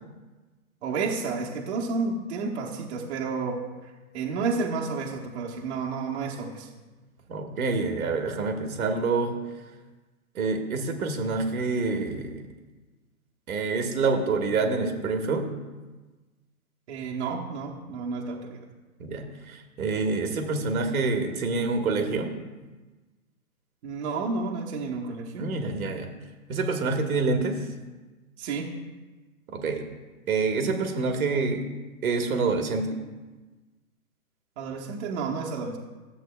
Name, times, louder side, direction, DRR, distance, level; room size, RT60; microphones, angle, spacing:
voice 1, 0.8-6.7 16.9-18.6 23.8-25.5 28.4-28.7 34.6-35.8, right 4 dB, 50° right, -2 dB, 1.1 m, -31 dB
voice 2, 7.3-9.4 10.3-12.4 13.5-15.5 19.0-22.3 25.4-26.1 26.5-27.6 29.5-29.8 30.3-31.6 32.0-33.0, right 4 dB, 75° right, 4 dB, 1.4 m, -27 dB
13.0 x 7.6 x 2.3 m, 1.2 s
hypercardioid pair, 150°, 44 cm